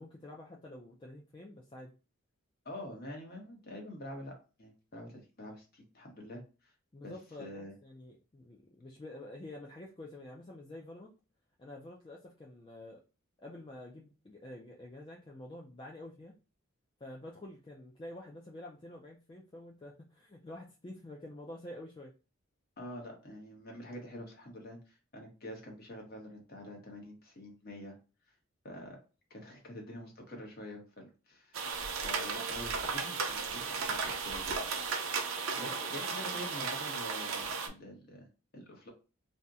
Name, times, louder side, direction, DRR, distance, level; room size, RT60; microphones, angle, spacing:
voice 1, 0.0-1.9 6.9-11.1 11.6-13.0 13.4-16.3 17.0-22.1 35.5-35.9, left 1 dB, 25° left, -2 dB, 0.3 m, -48 dB
voice 2, 2.6-6.7 7.0-7.1 7.4-7.7 22.8-28.0 28.6-29.0 29.3-31.6 32.0-34.7 35.6-38.3 38.5-38.9, left 1 dB, 45° left, 1 dB, 0.9 m, -46 dB
sound 1, 31.5-37.7, right 5 dB, 75° right, 0.5 m, -35 dB
2.7 x 2.1 x 3.5 m, 0.33 s
head